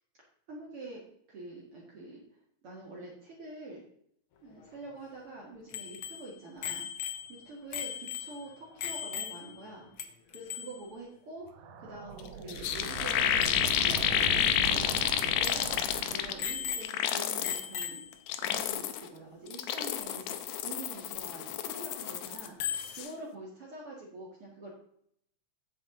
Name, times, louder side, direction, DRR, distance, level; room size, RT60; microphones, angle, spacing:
voice 1, 0.5-1.0 1.3-2.2 2.6-3.8 4.4-6.9 7.3-9.9 10.3-14.8 15.3-15.8 16.1-18.1 18.4-20.4 20.6-24.7, right 2 dB, 50° right, -4 dB, 2.5 m, -46 dB
Bicycle bell, 5.7-9.7 10.0-10.1 10.3-10.9 13.1-13.2 13.4-13.6 14.2-14.3 14.7-14.8 15.4-15.8 16.4-17.1 17.4-18.2 20.1-20.2 22.6-23.0, left 9 dB, 65° left, 1.3 m, -38 dB
sound 1, 11.4-16.9, right 5 dB, 85° right, 2.5 m, -40 dB
sound 2, 12.2-12.3 12.5-16.5 16.8-17.7 18.1-19.1 19.5-22.5 22.7-23.1, left 10 dB, 85° left, 2.2 m, -30 dB
8.7 x 7.9 x 3.8 m, 0.68 s
omnidirectional pair, 3.5 m